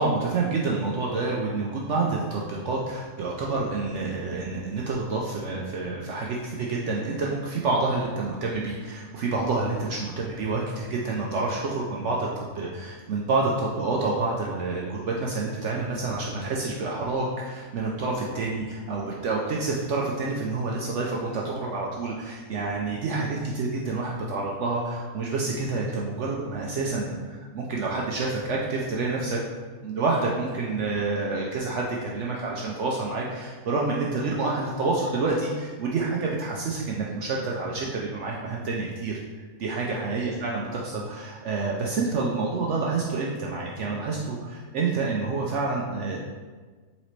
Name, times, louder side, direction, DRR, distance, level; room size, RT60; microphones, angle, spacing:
voice 1, 0.0-29.4 29.8-39.2 39.6-46.2, right 3 dB, 75° right, -2 dB, 0.6 m, -28 dB
4.1 x 3.9 x 3.1 m, 1.4 s
omnidirectional pair, 1.7 m